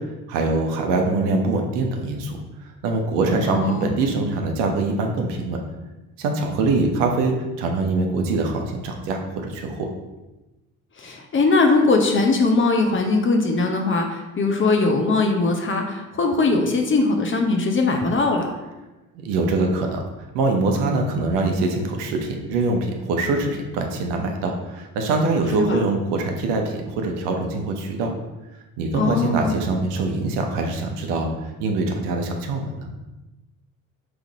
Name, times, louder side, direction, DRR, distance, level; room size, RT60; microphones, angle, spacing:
voice 1, 0.3-2.4 2.8-5.6 6.2-9.9 19.1-20.1 20.3-28.1 28.8-31.3 31.6-32.9, right 3 dB, 70° right, 3 dB, 0.8 m, -23 dB
voice 2, 3.5-3.9 11.0-18.6 25.6-25.8 28.9-29.6, left 3 dB, 30° left, 3 dB, 0.8 m, -20 dB
3.6 x 3.4 x 4.1 m, 1.1 s
hypercardioid pair, 55°, 43 cm